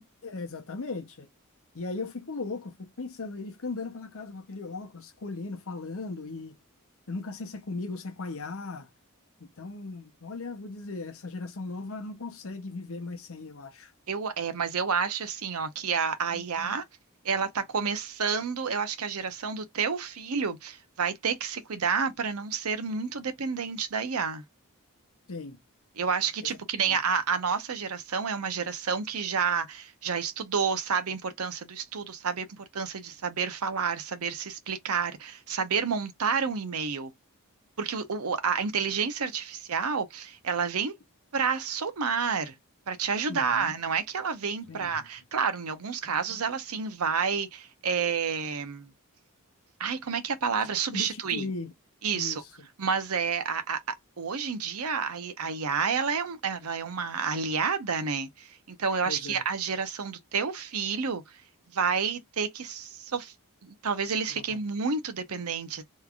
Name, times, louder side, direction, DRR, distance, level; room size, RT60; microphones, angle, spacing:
voice 1, 0.2-1.3 1.7-6.6 7.1-8.9 9.4-13.9 16.3-16.8 25.3-25.6 26.4-26.5 26.8-27.0 43.3-43.7 44.7-45.1 46.1-46.4 50.9-51.7 52.1-52.5 59.1-59.4 64.3-64.4, left 3 dB, 65° left, 0.9 m, -38 dB
voice 2, 14.1-16.8 17.2-24.4 26.0-37.1 37.8-40.9 41.3-42.5 42.9-48.9 49.8-51.5 52.0-52.4 52.8-61.2 61.7-63.3 63.6-65.8, right 6 dB, 70° right, 0.7 m, -30 dB
3.4 x 3.2 x 2.4 m
head